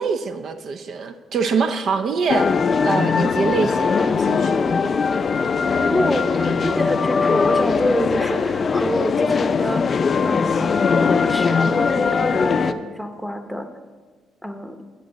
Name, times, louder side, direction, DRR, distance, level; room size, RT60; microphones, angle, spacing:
voice 1, 0.0-2.5 2.8-4.6, right 5 dB, 60° right, 8 dB, 0.5 m, -24 dB
sound 1, 2.3-12.7, left 5 dB, 45° left, 0.4 m, -20 dB
voice 2, 5.8-9.8 10.2-10.8 11.3-13.7 14.4-14.8, equal, ahead, 6 dB, 0.8 m, -27 dB
9.9 x 7.5 x 4.0 m, 1.4 s
cardioid pair, 90°, 0 cm